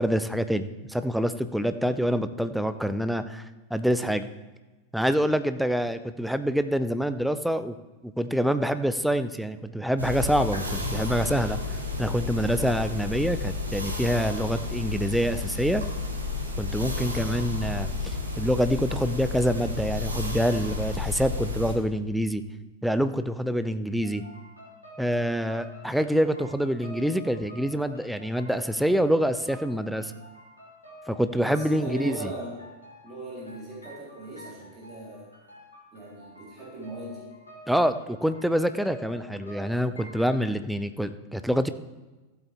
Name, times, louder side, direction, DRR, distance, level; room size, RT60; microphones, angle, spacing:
voice 1, 0.0-3.5 3.7-4.3 4.9-7.8 8.0-11.6 12.0-15.8 16.6-22.4 22.8-24.2 25.0-30.1 31.1-32.3 37.7-41.7, equal, ahead, 11 dB, 0.5 m, -26 dB
sound 1, 10.0-21.7, left 3 dB, 75° right, 1.7 m, -31 dB
sound 2, 24.0-40.5, left 1 dB, 80° left, 2.8 m, -48 dB
voice 2, 31.5-32.6 33.0-35.3 35.9-37.3, right 2 dB, 30° right, -6 dB, 3.7 m, -39 dB
15.0 x 8.1 x 3.4 m, 1.2 s
figure-of-eight pair, 90°, 0 cm